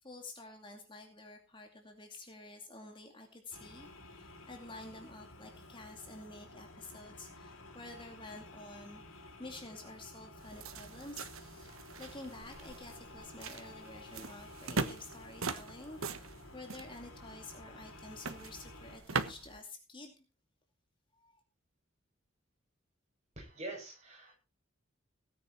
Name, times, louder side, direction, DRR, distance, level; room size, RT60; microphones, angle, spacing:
voice 1, 0.0-20.2 21.1-21.4, left 2 dB, 25° left, 4 dB, 2.4 m, -50 dB
sound 1, 3.5-19.0, left 2 dB, 90° left, 4.5 m, -53 dB
sound 2, 10.4-19.6, right 4 dB, 90° right, 1.3 m, -42 dB
voice 2, 23.4-24.3, right 2 dB, 35° right, 1 dB, 7.5 m, -45 dB
17.5 x 9.6 x 4.5 m, 0.32 s
head